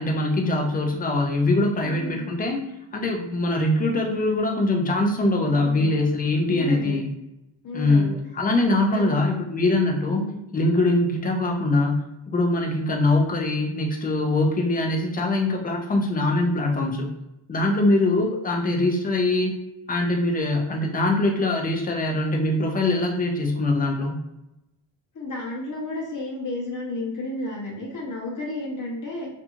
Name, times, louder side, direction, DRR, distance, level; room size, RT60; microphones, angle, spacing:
voice 1, 0.0-2.6 2.9-7.1 7.7-10.2 10.5-17.1 17.5-19.6 19.9-24.2, left 2 dB, 20° left, 1 dB, 0.4 m, -23 dB
voice 2, 1.8-2.3 5.4-6.0 6.5-7.0 7.6-8.1 8.7-9.2 10.1-10.4 17.6-17.9 25.1-29.3, left 2 dB, 40° left, -2 dB, 0.8 m, -32 dB
2.7 x 2.6 x 2.3 m, 0.89 s
cardioid pair, 110°, 49 cm